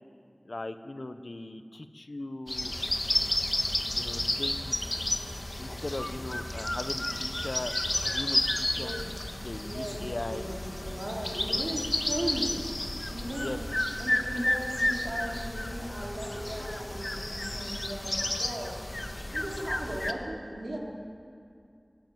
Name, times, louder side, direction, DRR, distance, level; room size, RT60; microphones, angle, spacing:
voice 1, 0.4-2.7 3.9-4.7 5.6-7.7 8.0-8.9 9.4-10.5 13.3-13.6, left 2 dB, 75° left, 9 dB, 1.0 m, -39 dB
sound 1, 2.5-20.1, left 1 dB, 45° left, 1.6 m, -32 dB
voice 2, 8.7-9.1 9.7-10.0 10.3-12.5 13.1-18.8 19.3-20.8, right 1 dB, 70° right, -2 dB, 4.1 m, -37 dB
18.5 x 18.0 x 9.3 m, 2.4 s
wide cardioid pair, 40°, 0 cm